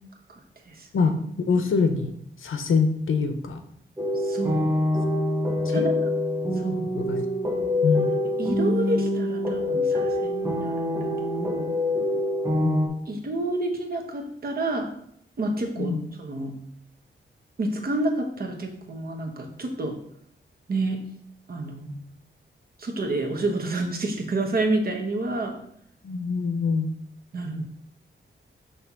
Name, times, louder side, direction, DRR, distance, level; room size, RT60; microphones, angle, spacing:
voice 1, 1.5-2.1 2.4-3.6 5.6-5.9 7.0-7.3 7.8-8.2 12.6-12.8 15.8-16.0 26.0-26.9, left 4 dB, 85° left, 7 dB, 0.8 m, -24 dB
sound 1, 4.0-12.9, left 1 dB, 10° right, 1.0 m, -25 dB
voice 2, 4.1-4.7 5.7-5.9 6.6-6.9 8.4-11.7 13.1-14.9 15.4-16.6 17.6-20.0 20.7-21.0 21.5-22.0 22.8-25.6 27.3-27.6, right 2 dB, 50° right, 2 dB, 1.1 m, -29 dB
5.7 x 3.4 x 5.8 m, 0.68 s
wide cardioid pair, 160°, 20 cm